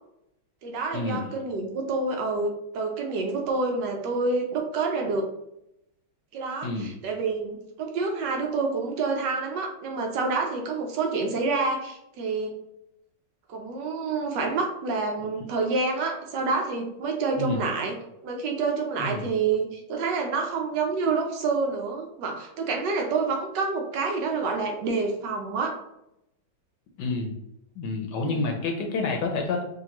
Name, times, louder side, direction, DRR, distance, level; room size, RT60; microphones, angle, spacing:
voice 1, 0.6-5.3 6.3-12.5 13.5-18.0 18.2-25.8 28.2-28.4, right 4 dB, 70° right, 2 dB, 1.2 m, -28 dB
voice 2, 27.0-27.4 27.8-29.6, left 3 dB, 70° left, 2 dB, 1.2 m, -28 dB
5.2 x 2.5 x 2.9 m, 0.81 s
omnidirectional pair, 2.1 m